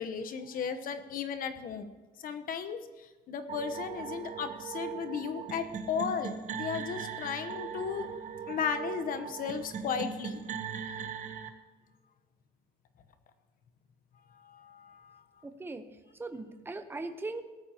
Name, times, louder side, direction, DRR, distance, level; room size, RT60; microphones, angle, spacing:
voice 1, 0.0-1.9 2.2-8.1 8.5-10.4 14.3-15.2, left 6 dB, 55° left, 9 dB, 1.1 m, -35 dB
sound 1, 3.5-11.5, right 7 dB, 50° right, 1.1 m, -39 dB
voice 2, 15.4-15.8 16.2-17.4, right 2 dB, 15° right, 8 dB, 1.0 m, -39 dB
18.0 x 13.5 x 3.0 m, 1.3 s
cardioid pair, 110°, 17 cm